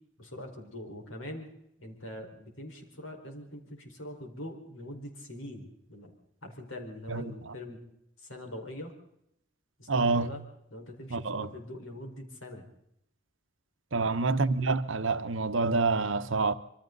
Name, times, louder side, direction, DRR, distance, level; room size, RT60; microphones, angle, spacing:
voice 1, 0.2-1.5 1.8-6.1 6.4-7.8 8.2-8.9 9.8-10.4 10.7-12.6 14.0-14.2, left 1 dB, 85° left, 5.0 m, -43 dB
voice 2, 9.9-10.3 11.1-11.5 13.9-16.5, right 3 dB, 75° right, 1.1 m, -27 dB
27.0 x 24.0 x 4.1 m
head